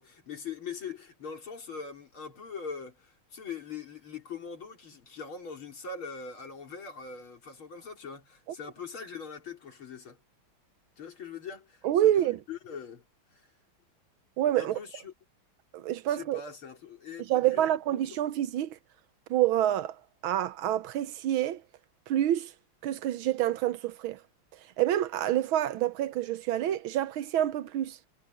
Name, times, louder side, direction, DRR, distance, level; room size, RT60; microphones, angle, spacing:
voice 1, 0.0-10.2 11.0-13.0 13.3-13.4 14.6-15.1 16.1-18.2, left 5 dB, 70° left, 4.6 m, -42 dB
voice 2, 11.8-12.4 14.4-14.8 15.7-16.4 17.3-18.7 19.3-19.9 20.2-21.6 22.1-22.5 22.8-24.2 24.8-28.0, right 12 dB, 75° right, 1.5 m, -27 dB
omnidirectional pair, 2.4 m